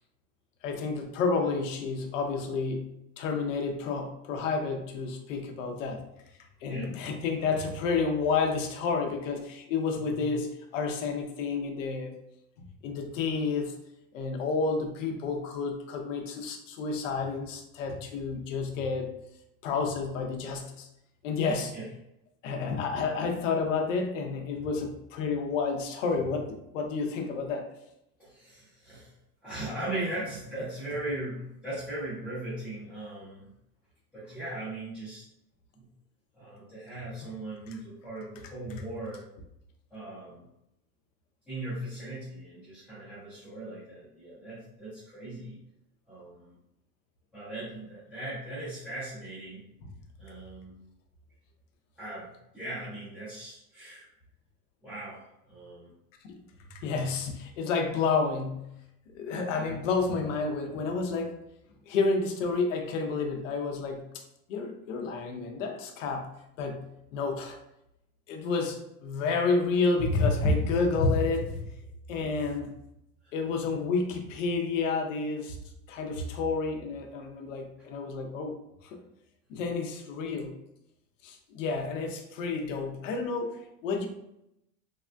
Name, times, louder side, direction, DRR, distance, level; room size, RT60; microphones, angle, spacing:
voice 1, 0.6-6.0 6.6-12.2 12.6-13.8 14.1-19.2 19.6-20.9 21.2-21.7 22.4-27.7 37.2-37.3 56.2-56.4 56.7-58.7 59.1-61.4 61.9-64.1 64.5-66.3 66.6-67.6 68.3-71.6 72.1-72.7 73.3-75.6 75.9-79.0 79.5-80.6 81.2-84.1, left 4 dB, 55° left, 4 dB, 0.5 m, -30 dB
voice 2, 28.2-29.1 29.4-33.5 34.1-35.2 35.7-35.8 36.3-39.2 39.9-40.4 41.5-45.6 46.1-46.5 47.3-49.6 50.2-50.8 52.0-54.1 54.8-55.2 55.5-55.9 73.2-73.3, right 1 dB, ahead, -18 dB, 0.5 m, -39 dB
3.5 x 2.2 x 2.4 m, 0.82 s
supercardioid pair, 180°, 48 cm